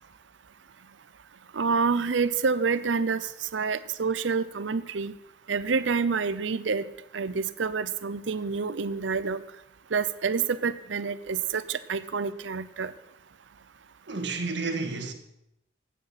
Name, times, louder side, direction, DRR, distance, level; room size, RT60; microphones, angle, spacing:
voice 1, 1.5-5.1 5.5-6.9 7.1-9.4 9.9-12.9, right 5 dB, 85° right, 0.6 m, -28 dB
voice 2, 14.1-15.1, right 3 dB, 70° right, 1.8 m, -31 dB
15.0 x 9.2 x 5.8 m
head